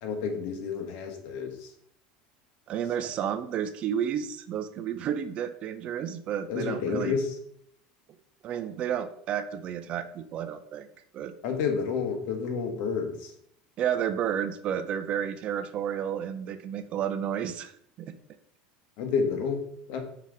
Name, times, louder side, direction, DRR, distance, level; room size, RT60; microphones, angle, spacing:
voice 1, 0.0-1.7 6.5-7.4 11.4-13.3 19.0-19.6 19.9-20.0, left 5 dB, 65° left, 4 dB, 1.3 m, -30 dB
voice 2, 2.7-7.2 8.4-10.9 11.1-11.3 13.8-18.1, right 9 dB, 40° right, 11 dB, 0.5 m, -31 dB
5.6 x 3.9 x 4.7 m, 0.67 s
supercardioid pair, 135°, 3 cm